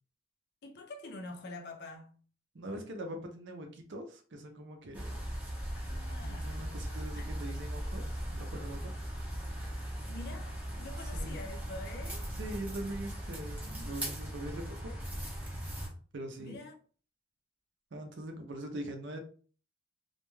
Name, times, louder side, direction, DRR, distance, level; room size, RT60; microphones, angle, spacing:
voice 1, 0.6-2.2 5.7-7.4 10.1-12.3 16.4-16.7, left 2 dB, 50° left, 0.5 m, -46 dB
voice 2, 2.5-5.1 6.2-8.9 11.1-11.5 11.7-11.8 12.4-14.8 16.1-16.6 17.9-19.2, right 1 dB, 55° right, 0.5 m, -42 dB
sound 1, 4.9-15.9, equal, 5° right, 0.6 m, -39 dB
2.3 x 2.2 x 3.1 m
head